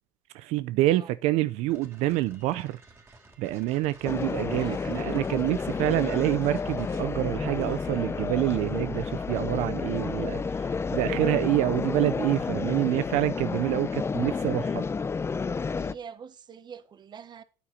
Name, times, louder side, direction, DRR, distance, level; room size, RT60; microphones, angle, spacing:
voice 1, 0.3-2.8 3.4-14.8, right 16 dB, 85° right, 0.5 m, -27 dB
sound 1, 1.7-8.3, right 2 dB, 25° right, 3.3 m, -54 dB
sound 2, 4.0-15.9, left 5 dB, 25° left, 0.5 m, -30 dB
voice 2, 4.2-5.1 15.6-17.4, right 7 dB, 40° right, 1.2 m, -44 dB
9.2 x 8.9 x 6.3 m
cardioid pair, 105°, 11 cm